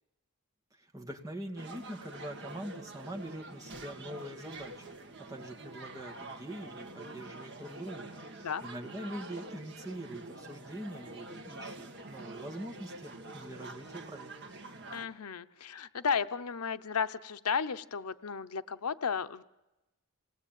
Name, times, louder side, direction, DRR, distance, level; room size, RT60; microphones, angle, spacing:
voice 1, 0.7-4.9 5.2-11.8 12.1-14.3, right 1 dB, 15° right, 2 dB, 2.3 m, -43 dB
sound 1, 1.6-15.1, right 2 dB, 50° right, 2.0 m, -46 dB
voice 2, 14.9-19.4, left 6 dB, 85° left, 13 dB, 0.8 m, -34 dB
27.5 x 19.0 x 9.2 m, 1.0 s
head